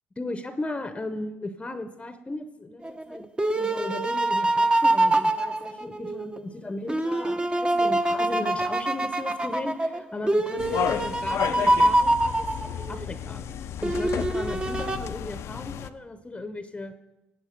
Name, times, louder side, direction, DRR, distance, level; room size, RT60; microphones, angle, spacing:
voice 1, 0.2-3.3 3.5-12.5 12.9-16.9, left 2 dB, 20° left, 10 dB, 0.8 m, -36 dB
sound 1, 2.8-6.4 6.9-13.1 13.8-15.0, right 1 dB, 20° right, 0.8 m, -25 dB
sound 2, 10.6-15.9, left 9 dB, 65° left, 0.5 m, -32 dB
16.5 x 8.2 x 5.1 m, 1.0 s
supercardioid pair, 65°, 5 cm